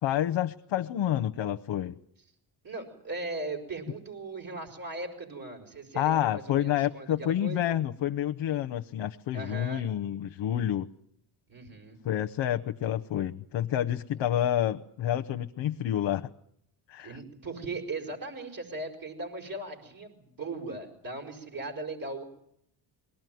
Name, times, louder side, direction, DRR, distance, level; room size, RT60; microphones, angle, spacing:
voice 1, 0.0-2.0 5.9-10.9 12.0-16.3 16.9-17.2, left 11 dB, 70° left, 7 dB, 0.9 m, -29 dB
voice 2, 2.6-7.6 9.3-9.8 11.5-12.0 17.0-22.2, right 2 dB, 45° right, 1 dB, 5.8 m, -38 dB
22.0 x 18.5 x 9.3 m, 0.73 s
cardioid pair, 90°, 47 cm